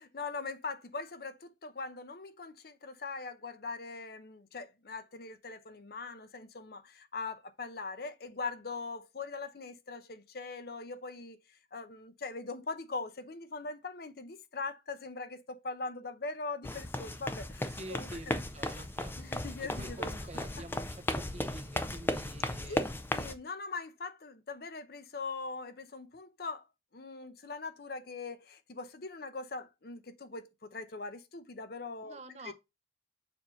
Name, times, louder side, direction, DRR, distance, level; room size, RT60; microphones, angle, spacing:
voice 1, 0.1-11.4 11.7-18.4 19.2-20.6 22.7-22.8 23.1-26.6 26.9-32.5, left 3 dB, 55° left, 0.7 m, -41 dB
Pasos rápidos loseta, 16.6-23.3, left 1 dB, 10° left, 0.4 m, -36 dB
voice 2, 17.7-22.9 32.0-32.5, right 2 dB, 35° right, 0.8 m, -48 dB
7.0 x 2.7 x 5.5 m
head